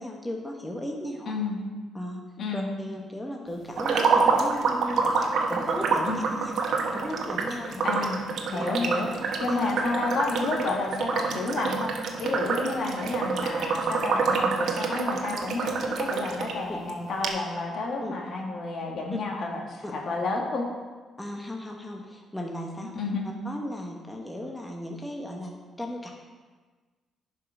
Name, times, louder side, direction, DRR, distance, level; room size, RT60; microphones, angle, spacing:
voice 1, 0.0-1.4 1.9-2.2 2.5-6.6 6.9-8.0 8.5-8.7 9.5-9.6 16.7-16.8 18.0-18.1 19.1-19.2 19.8-19.9 21.2-22.9 23.4-26.1, left 1 dB, 10° left, 0 dB, 1.2 m, -36 dB
voice 2, 1.3-1.6 2.4-2.7 6.1-6.2 7.8-9.1 9.4-20.6 22.9-23.2, left 3 dB, 60° left, -1 dB, 2.1 m, -30 dB
sound 1, 3.8-16.5 16.9-17.0 17.2-17.3, right 4 dB, 65° right, 1.2 m, -27 dB
10.5 x 5.7 x 5.0 m, 1.4 s
cardioid pair, 90°, 0 cm